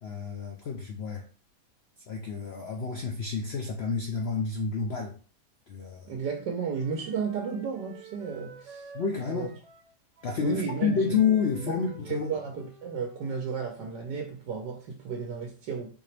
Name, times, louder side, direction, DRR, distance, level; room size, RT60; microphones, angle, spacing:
voice 1, 0.0-1.3 2.1-5.2 5.7-6.1 8.9-9.5 10.2-12.3, left 6 dB, 75° left, 0.5 m, -29 dB
voice 2, 6.0-8.9 9.2-9.5 10.4-11.0 11.6-11.8 12.1-15.9, right 6 dB, 90° right, 1.4 m, -33 dB
Wind instrument woodwind instrument, 6.3-14.0, right 5 dB, 55° right, 1.0 m, -50 dB
4.5 x 2.9 x 3.2 m
omnidirectional pair, 1.8 m